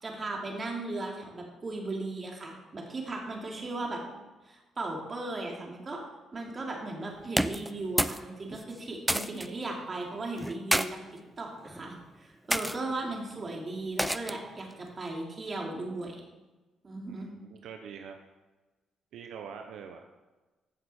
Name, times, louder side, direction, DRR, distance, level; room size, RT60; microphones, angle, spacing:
voice 1, 0.0-4.0 4.4-6.0 6.3-11.0 11.4-16.2 16.8-17.3, right 2 dB, 35° right, 0 dB, 2.7 m, -37 dB
voice 2, 3.5-4.3 12.9-13.6 17.1-18.2 19.1-20.1, right 7 dB, 80° right, 5 dB, 0.9 m, -46 dB
sound 1, 7.3-8.2 8.5-9.5 10.4-10.9 11.6-11.9 12.5-12.8 14.0-14.5, right 1 dB, 5° right, 0.5 m, -29 dB
15.0 x 6.8 x 4.4 m, 1.2 s
cardioid pair, 90°, 0 cm